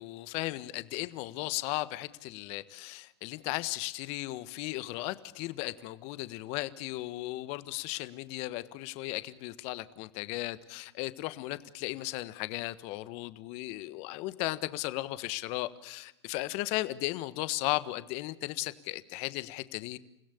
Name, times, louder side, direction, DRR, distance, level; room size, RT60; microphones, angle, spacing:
voice 1, 0.0-20.0, left 18 dB, 50° left, 14 dB, 1.5 m, -36 dB
30.0 x 17.0 x 8.5 m, 0.89 s
hypercardioid pair, 115°, 14 cm